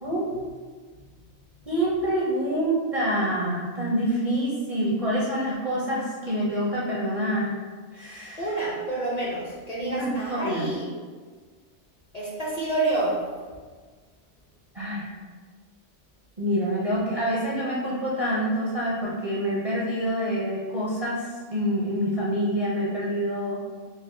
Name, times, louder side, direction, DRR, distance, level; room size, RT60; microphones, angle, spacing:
voice 1, 1.7-7.5 7.9-8.6 9.8-10.7 14.7-15.0 16.4-23.6, equal, 40° right, -7 dB, 0.5 m, -26 dB
voice 2, 8.4-10.9 12.1-13.2, right 2 dB, 45° left, -6 dB, 0.6 m, -28 dB
5.1 x 2.1 x 2.6 m, 1.5 s
omnidirectional pair, 1.2 m